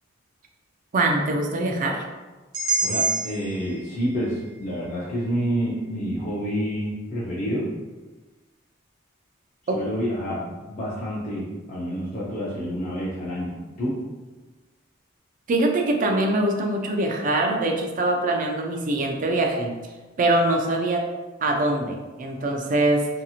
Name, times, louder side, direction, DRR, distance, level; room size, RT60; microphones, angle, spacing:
voice 1, 0.9-2.1 9.7-9.8 15.5-19.7 20.2-21.0 21.4-23.1, right 2 dB, 40° right, 2 dB, 0.4 m, -23 dB
sound 1, 2.5-6.6, right 3 dB, 85° right, 1.0 m, -30 dB
voice 2, 2.8-7.7 9.7-14.0, equal, 40° left, -7 dB, 0.5 m, -28 dB
2.8 x 2.6 x 2.4 m, 1.2 s
head